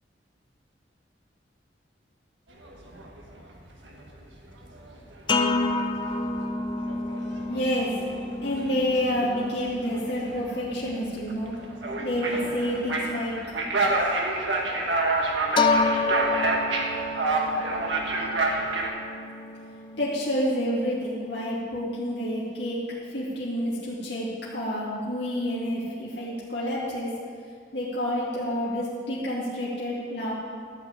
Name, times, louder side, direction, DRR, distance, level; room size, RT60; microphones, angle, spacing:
sound 1, 2.6-3.4 3.7-4.2 4.5-18.9, right 2 dB, 85° right, 1.6 m, -29 dB
sound 2, 5.3-13.9 15.6-21.4, left 3 dB, 25° left, 0.5 m, -30 dB
voice 1, 7.5-8.0 8.4-11.5 12.0-13.3 19.9-22.8 23.1-27.1 27.7-30.3, equal, 70° left, -7 dB, 2.4 m, -29 dB
13.0 x 5.7 x 8.2 m, 2.2 s
head